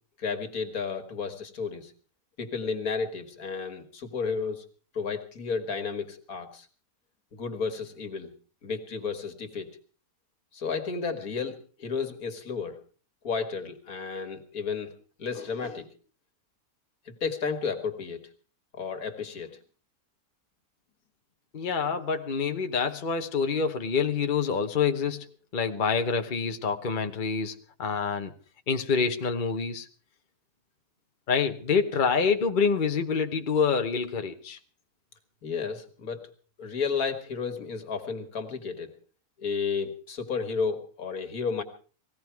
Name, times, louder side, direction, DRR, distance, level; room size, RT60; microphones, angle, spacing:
voice 1, 0.2-1.9 2.4-4.7 4.9-6.7 7.3-8.3 8.6-9.7 10.5-12.8 13.2-14.9 15.2-15.9 17.1-18.3 18.7-19.6 35.4-36.3 36.6-38.9 39.4-41.6, left 5 dB, 85° left, 7 dB, 2.2 m, -32 dB
voice 2, 21.5-25.3 25.5-27.5 27.8-28.3 28.7-29.9 31.3-34.6, left 5 dB, 40° left, 6 dB, 1.1 m, -26 dB
19.0 x 16.0 x 4.6 m, 0.39 s
omnidirectional pair, 1.5 m